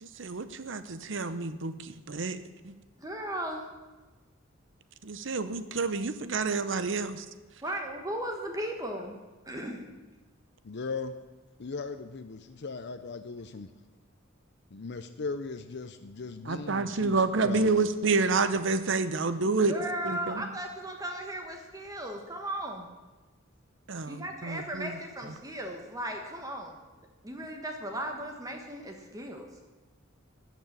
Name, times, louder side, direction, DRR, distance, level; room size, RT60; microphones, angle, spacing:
voice 1, 0.0-2.4 2.6-2.7 5.0-7.2 16.4-19.7 20.0-20.5 23.9-25.0 25.3-25.4, right 4 dB, 65° right, 12 dB, 0.8 m, -29 dB
voice 2, 3.0-3.6 7.6-9.1 9.5-9.8 19.4-22.9 24.1-26.8 27.2-29.4, right 1 dB, 20° right, 3 dB, 1.2 m, -36 dB
voice 3, 10.6-11.1 11.6-13.7 14.7-17.9, left 4 dB, 60° left, 9 dB, 0.6 m, -38 dB
13.5 x 6.2 x 8.7 m, 1.2 s
head